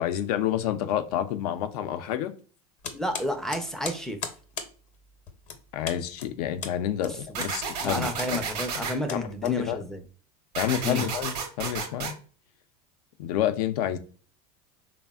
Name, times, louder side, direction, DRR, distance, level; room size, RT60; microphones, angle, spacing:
voice 1, 0.0-2.3 5.7-8.4 9.1-9.8 10.6-12.1 13.2-14.0, left 11 dB, 75° left, 0.4 m, -29 dB
sound 1, 2.8-10.0, left 6 dB, 40° left, 0.6 m, -40 dB
voice 2, 2.9-4.2 7.3-7.4 7.8-10.0 10.8-11.1, left 1 dB, ahead, 0.4 m, -31 dB
sound 2, 7.3-8.9 10.5-12.1, right 5 dB, 80° right, 0.8 m, -32 dB
3.3 x 2.0 x 2.2 m
supercardioid pair, 110°, 20 cm